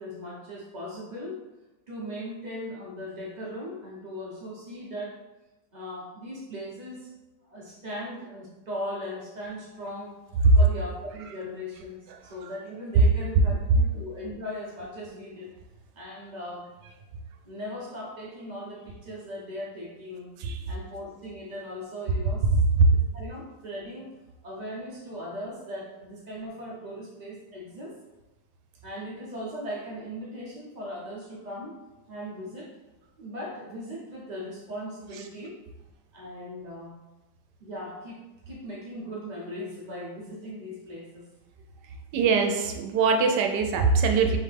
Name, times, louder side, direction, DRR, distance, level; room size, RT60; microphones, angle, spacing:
voice 1, 0.0-1.4 1.9-5.2 5.7-7.1 7.4-10.2 10.5-15.5 15.9-16.7 17.4-20.3 20.7-22.5 22.9-24.1 24.4-27.9 28.8-31.7 32.1-32.7 33.2-35.5 36.1-36.9 37.6-41.3, equal, 30° right, -5 dB, 0.9 m, -38 dB
voice 2, 12.1-12.5 20.4-20.6 22.5-22.9 42.1-44.4, right 4 dB, 90° right, 4 dB, 1.2 m, -22 dB
4.2 x 3.3 x 3.3 m, 1.0 s
omnidirectional pair, 1.8 m